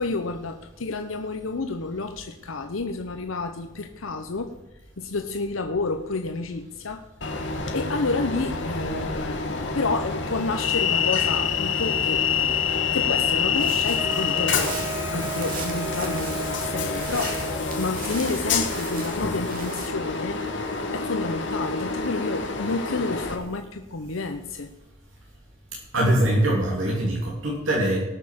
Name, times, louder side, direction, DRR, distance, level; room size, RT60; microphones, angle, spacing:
voice 1, 0.0-4.5 5.0-7.0 7.7-12.6 12.9-14.8 15.1-20.4 20.9-24.7, left 3 dB, 85° left, 6 dB, 0.9 m, -30 dB
Train, 7.2-23.4, left 5 dB, 60° left, 2.0 m, -27 dB
sound 1, 13.5-19.9, right 3 dB, 45° right, 2.6 m, -39 dB
Wind instrument woodwind instrument, 14.0-17.8, right 2 dB, 15° right, 0.7 m, -36 dB
voice 2, 25.9-28.0, right 1 dB, 80° right, -3 dB, 3.0 m, -22 dB
19.0 x 6.6 x 7.4 m, 1.0 s
head